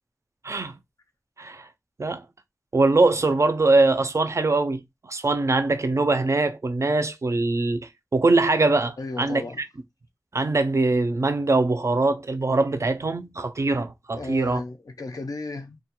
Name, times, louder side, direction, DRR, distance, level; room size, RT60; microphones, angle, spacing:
voice 1, 0.4-0.8 1.4-1.7 2.0-2.3 2.7-9.4 10.3-14.6, right 3 dB, 50° right, 0.3 m, -22 dB
voice 2, 9.0-9.6 14.2-15.8, left 3 dB, 80° left, 0.4 m, -34 dB
2.2 x 2.1 x 2.8 m
wide cardioid pair, 55°, 6 cm